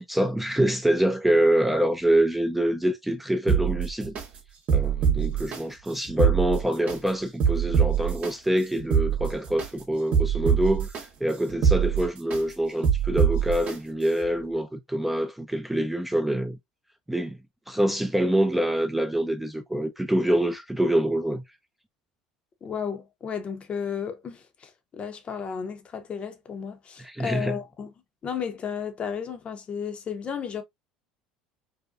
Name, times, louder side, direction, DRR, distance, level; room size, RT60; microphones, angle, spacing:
voice 1, 0.0-4.2 4.7-16.6 17.1-17.4 17.7-21.4 27.0-27.6, right 1 dB, 5° right, 0.3 m, -25 dB
sound 1, 3.5-4.2 4.7-5.6 6.1-7.0 7.4-8.3 8.8-9.7 10.1-11.0 11.5-12.4 12.8-13.7 14.2-14.3, right 7 dB, 45° right, 0.8 m, -23 dB
voice 2, 22.6-27.9 28.2-30.6, left 7 dB, 35° left, 0.6 m, -33 dB
2.6 x 2.2 x 2.3 m
hypercardioid pair, 70°, 3 cm